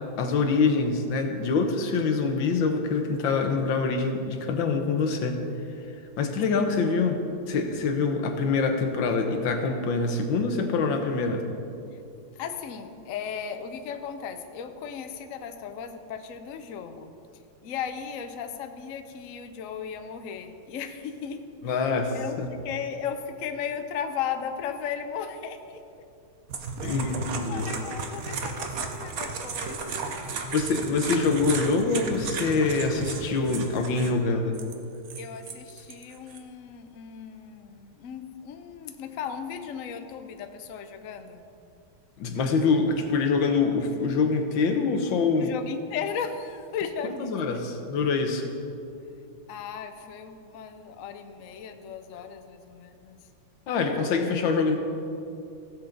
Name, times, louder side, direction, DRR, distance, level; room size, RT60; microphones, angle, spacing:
voice 1, 0.2-5.4 6.2-7.2 7.5-11.4 21.6-22.5 26.8-27.7 30.4-34.6 42.2-45.5 47.2-48.5 53.7-54.8, left 4 dB, 65° left, 4 dB, 1.6 m, -25 dB
voice 2, 6.5-6.8 11.9-12.0 12.3-17.1 17.6-25.8 26.8-30.4 35.2-41.4 45.4-47.6 49.5-53.2, left 7 dB, 85° left, 7 dB, 0.7 m, -36 dB
sound 1, 26.5-34.1 34.5-36.4, right 4 dB, 55° right, 1.0 m, -34 dB
16.5 x 7.3 x 3.9 m, 2.6 s
omnidirectional pair, 2.3 m